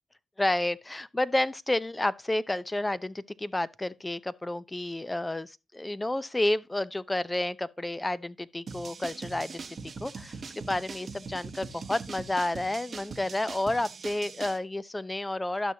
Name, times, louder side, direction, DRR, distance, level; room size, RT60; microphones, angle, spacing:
voice 1, 0.4-9.6 10.0-15.7, left 1 dB, 20° left, 0.6 m, -30 dB
sound 1, 8.7-14.6, right 4 dB, 50° right, 1.0 m, -41 dB
11.5 x 6.4 x 2.8 m
hypercardioid pair, 45°, 0 cm